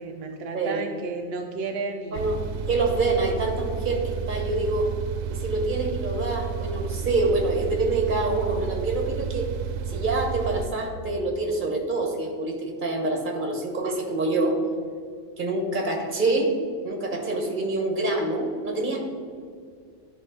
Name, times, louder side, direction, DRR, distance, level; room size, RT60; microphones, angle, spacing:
voice 1, 0.0-2.3, right 4 dB, 65° right, 4 dB, 0.6 m, -32 dB
sound 1, 2.1-10.7, right 7 dB, 90° right, 1.1 m, -31 dB
voice 2, 2.7-4.9 5.3-9.5 9.9-14.6 15.4-16.5 16.8-19.1, right 2 dB, 35° right, 2 dB, 1.3 m, -26 dB
12.0 x 5.1 x 4.1 m, 2.2 s
omnidirectional pair, 1.6 m